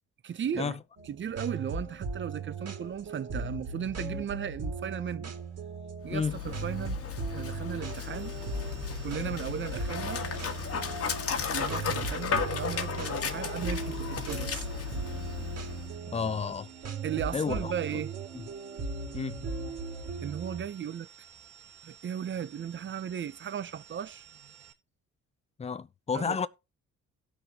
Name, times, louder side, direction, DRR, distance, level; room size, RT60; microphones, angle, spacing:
voice 1, 0.2-0.8 1.0-5.3 6.0-8.4 9.0-10.2 11.5-14.7 17.0-18.1 20.2-21.1 21.8-24.2 26.1-26.5, right 8 dB, 40° right, 0.7 m, -36 dB
sound 1, 1.0-20.6, right 4 dB, 55° right, 2.3 m, -38 dB
Dog, 6.0-16.0, left 6 dB, 50° left, 1.4 m, -35 dB
sound 2, 7.9-24.7, right 9 dB, 90° right, 2.0 m, -54 dB
voice 2, 16.1-16.7 17.3-17.6 19.1-19.4 25.6-26.5, left 5 dB, 20° left, 0.6 m, -31 dB
17.5 x 6.3 x 2.9 m
cardioid pair, 90°, 30 cm